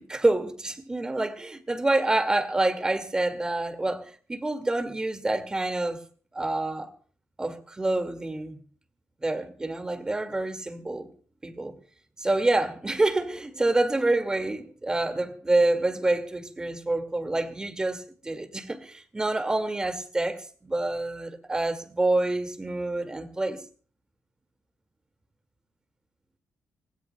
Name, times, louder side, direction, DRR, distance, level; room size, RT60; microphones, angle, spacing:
voice 1, 0.0-6.0 6.3-6.9 7.4-8.6 9.2-11.1 11.4-11.7 12.2-23.6, right 2 dB, 15° right, 2.1 m, -27 dB
25.5 x 18.0 x 2.2 m
cardioid pair, 130°, 5 cm